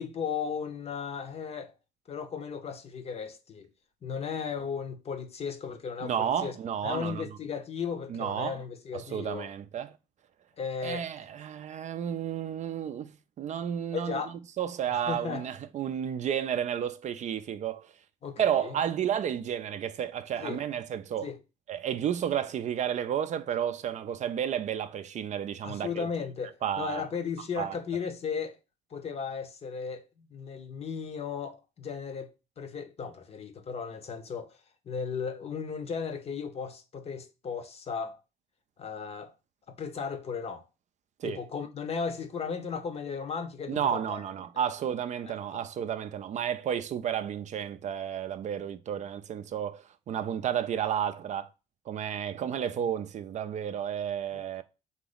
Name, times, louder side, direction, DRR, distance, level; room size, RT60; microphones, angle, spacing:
voice 1, 0.0-1.7 2.1-3.7 4.0-6.5 6.8-9.5 10.6-11.1 13.9-14.3 14.9-15.5 18.2-18.8 20.4-20.6 21.2-21.4 25.6-28.6 28.9-34.6 34.9-38.2 38.8-39.3 39.7-40.6 41.2-44.2 44.5-44.7 45.3-45.6 52.6-52.7 54.3-54.6, left 6 dB, 40° left, 0.7 m, -36 dB
voice 2, 6.0-7.4 8.1-8.6 8.9-10.0 10.8-13.1 13.4-14.2 14.6-17.9 18.4-21.3 21.7-26.1 26.6-27.0 27.6-27.8 41.2-41.4 43.7-51.5 51.9-54.6, right 9 dB, 45° right, 0.4 m, -32 dB
3.9 x 2.9 x 3.9 m
cardioid pair, 110°, 17 cm